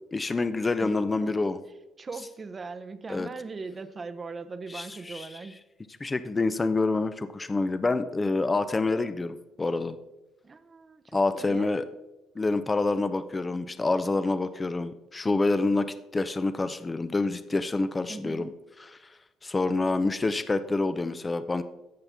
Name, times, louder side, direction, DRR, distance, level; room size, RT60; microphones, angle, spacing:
voice 1, 0.1-1.6 3.1-3.3 4.7-5.4 6.0-10.0 11.1-11.8 12.4-15.9 16.1-18.5 18.8-18.9 19.4-21.6, left 3 dB, 25° left, 12 dB, 0.6 m, -27 dB
voice 2, 0.8-1.5 2.0-5.6 10.4-11.7 18.1-18.5, right 4 dB, 35° right, 10 dB, 0.7 m, -40 dB
15.0 x 5.7 x 3.5 m, 0.99 s
cardioid pair, 85°, 0 cm